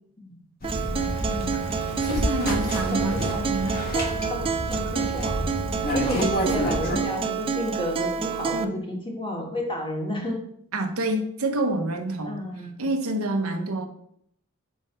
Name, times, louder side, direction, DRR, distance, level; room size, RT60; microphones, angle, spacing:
sound 1, 0.6-7.0, equal, 45° left, 1.2 m, -29 dB
Acoustic guitar, 0.6-8.6, right 6 dB, 25° right, 0.3 m, -28 dB
voice 1, 1.3-1.6 2.8-3.4 3.9-10.4 12.3-12.8 13.4-13.7, left 1 dB, 25° left, 0 dB, 1.3 m, -32 dB
voice 2, 2.0-3.8 6.1-6.3 8.5-8.8 10.7-12.4 12.8-13.9, right 1 dB, 85° right, 5 dB, 0.9 m, -28 dB
5.3 x 3.6 x 5.4 m, 0.67 s
head